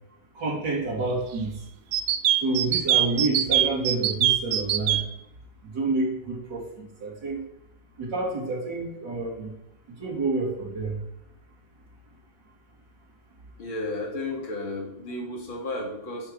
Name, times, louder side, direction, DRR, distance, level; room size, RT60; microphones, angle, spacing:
voice 1, 0.4-1.5 2.4-5.0 5.7-7.4 8.0-9.5 10.0-11.0, right 3 dB, 60° right, -5 dB, 3.7 m, -28 dB
sound 1, 1.9-5.0, right 11 dB, 80° right, 0.7 m, -22 dB
voice 2, 13.6-16.3, left 2 dB, 90° left, 0 dB, 2.9 m, -33 dB
12.0 x 8.7 x 3.3 m, 0.82 s
omnidirectional pair, 2.1 m